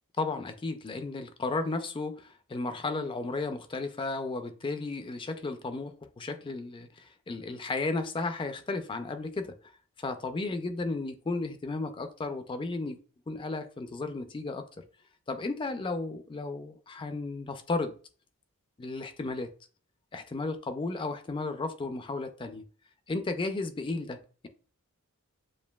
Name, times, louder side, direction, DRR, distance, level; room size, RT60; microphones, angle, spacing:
voice 1, 0.2-9.5 10.0-13.0 13.3-14.7 15.3-17.9 18.8-19.5 20.1-22.6 23.1-24.5, left 3 dB, 25° left, 0.4 m, -34 dB
7.1 x 2.6 x 2.3 m
head